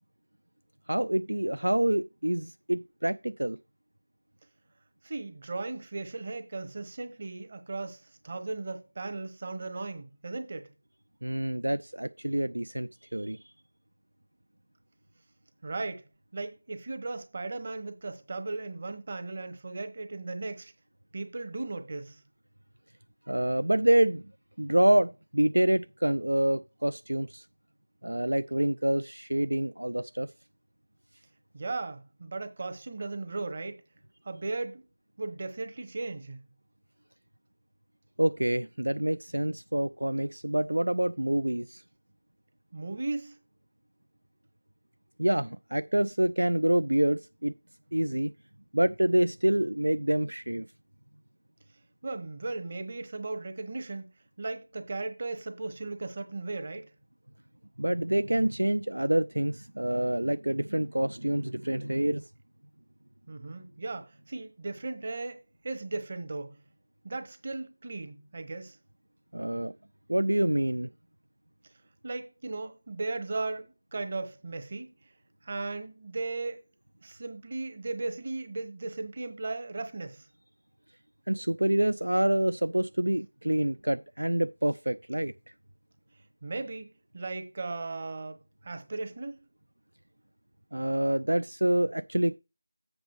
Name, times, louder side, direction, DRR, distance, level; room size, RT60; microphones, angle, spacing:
voice 1, 0.9-3.6 11.2-13.4 23.3-24.2 24.6-27.4 28.0-30.3 38.2-41.8 45.2-47.5 47.9-48.3 48.7-50.7 57.8-62.2 69.3-69.7 70.1-70.9 81.3-85.3 90.7-92.4, right 1 dB, 70° right, 0.4 m, -27 dB
voice 2, 5.0-10.7 15.6-16.1 16.3-20.7 21.1-22.2 31.5-33.8 34.2-34.8 35.2-36.4 42.7-43.4 52.0-54.1 54.4-56.9 63.3-66.6 67.0-68.8 72.0-74.9 75.4-76.6 77.0-80.3 86.4-89.4, right 3 dB, 30° right, 1.1 m, -36 dB
7.8 x 3.9 x 6.5 m
figure-of-eight pair, 165°, 0 cm